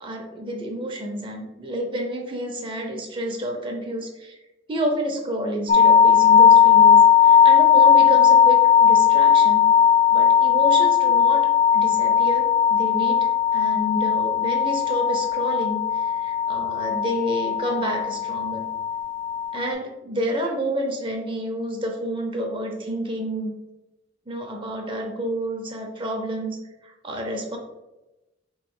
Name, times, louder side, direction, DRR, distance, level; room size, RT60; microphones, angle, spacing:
voice 1, 0.0-4.4 4.7-9.7 10.1-11.5 11.7-18.7 19.5-23.5 24.3-27.6, equal, 25° right, 2 dB, 0.6 m, -29 dB
sound 1, 5.7-19.7, left 8 dB, 40° left, 0.4 m, -17 dB
3.5 x 3.1 x 4.7 m, 1.0 s
head